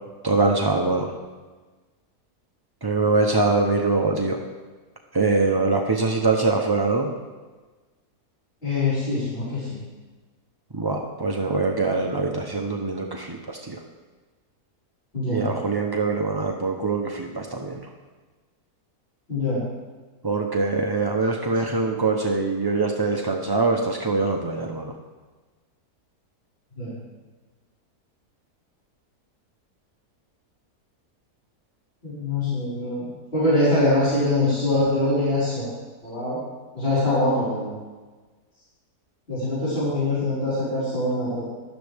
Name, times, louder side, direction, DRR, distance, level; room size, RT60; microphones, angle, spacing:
voice 1, 0.2-1.1 2.8-4.4 5.1-7.1 10.7-13.8 15.3-17.9 20.2-24.9 39.6-39.8, right 3 dB, 30° right, 1 dB, 0.4 m, -23 dB
voice 2, 8.6-9.8 15.1-15.5 19.3-19.6 21.6-21.7 26.8-26.9 32.0-35.7 36.0-36.4 36.7-37.7 39.3-41.4, left 1 dB, 35° left, -12 dB, 5.2 m, -23 dB
16.0 x 11.5 x 3.5 m, 1.3 s
omnidirectional pair, 1.7 m